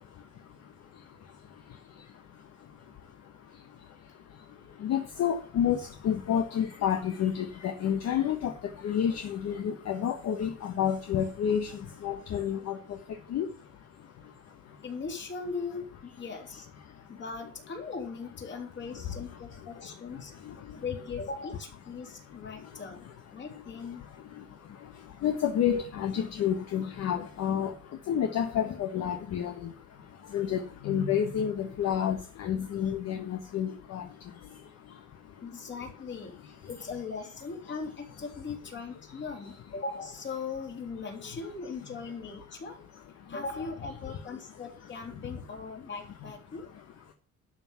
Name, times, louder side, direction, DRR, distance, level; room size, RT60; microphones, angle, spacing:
voice 1, 4.8-8.5 8.8-11.7 12.0-12.7 13.3-13.4 25.2-27.7 28.1-29.5 30.3-30.6 30.8-34.0, left 9 dB, 55° left, 5 dB, 1.4 m, -29 dB
voice 2, 14.8-16.7 17.1-20.3 20.7-23.1 23.3-24.1 35.4-42.8 43.3-46.7, left 4 dB, 40° left, 2 dB, 3.5 m, -39 dB
12.0 x 6.0 x 7.2 m, 0.40 s
cardioid pair, 160°, 30 cm